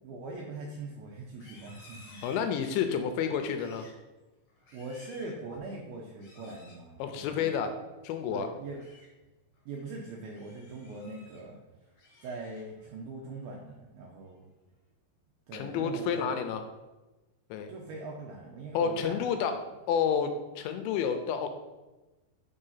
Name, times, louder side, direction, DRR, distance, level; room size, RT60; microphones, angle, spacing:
voice 1, 0.0-2.2 3.3-3.4 4.7-7.7 8.3-8.8 9.7-11.6 12.2-14.5 15.5-16.3 17.7-19.4, right 3 dB, 80° right, -1 dB, 2.2 m, -42 dB
Livestock farm animals working animals, 1.3-2.9 3.4-4.0 4.5-5.4 6.1-6.8 8.5-9.1 9.5-9.8 10.3-11.4 11.8-12.8 13.2-13.6 14.0-14.4, left 2 dB, 60° left, 1.6 m, -56 dB
voice 2, 2.2-3.9 7.0-7.8 8.0-8.5 15.5-16.6 17.5-17.7 18.7-19.5 19.9-21.5, left 7 dB, 80° left, 7 dB, 2.8 m, -30 dB
6.5 x 5.5 x 5.6 m, 1.1 s
omnidirectional pair, 5.4 m